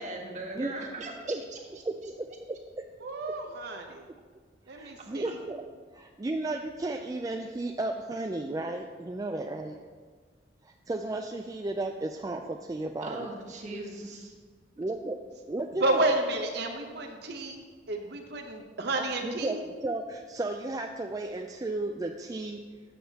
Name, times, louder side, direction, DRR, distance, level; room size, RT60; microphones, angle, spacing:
voice 1, 0.0-1.6 13.0-14.3, right 2 dB, 40° right, 0 dB, 1.3 m, -39 dB
voice 2, 1.8-2.9 3.3-3.4 4.7-5.6 5.9-9.8 10.6-13.3 14.8-15.2 15.5-16.1 19.0-22.6, right 2 dB, 20° right, 3 dB, 0.3 m, -34 dB
voice 3, 3.0-4.0 4.7-5.3 15.8-17.6 17.9-19.6, right 2 dB, 60° right, 3 dB, 0.7 m, -31 dB
12.5 x 7.5 x 2.8 m, 1.5 s
head